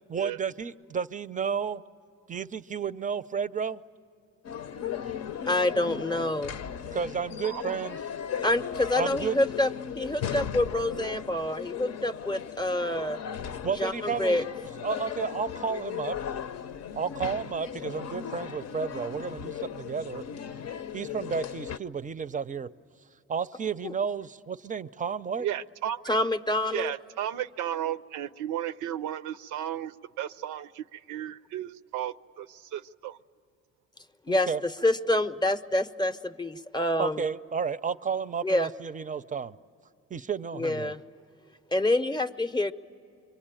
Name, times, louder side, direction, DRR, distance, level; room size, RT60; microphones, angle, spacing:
voice 1, 0.1-1.8 2.3-3.8 6.9-8.0 9.0-9.4 13.6-14.5 14.8-16.2 16.9-20.2 20.9-22.7 23.3-25.5 34.3-34.6 37.0-39.6 40.1-40.9, right 6 dB, 25° right, 15 dB, 0.5 m, -32 dB
sound 1, 4.4-21.8, left 8 dB, 60° left, 0.7 m, -37 dB
voice 2, 5.5-6.6 8.4-9.7 10.0-13.2 13.8-14.4 26.1-26.9 34.3-34.5 34.8-37.2 38.4-38.7 40.5-41.0 41.7-42.7, left 1 dB, 15° left, 9 dB, 0.6 m, -27 dB
voice 3, 25.4-26.0 26.7-33.2, right 11 dB, 80° right, 14 dB, 0.6 m, -34 dB
26.0 x 23.5 x 8.9 m, 2.7 s
cardioid pair, 90°, 30 cm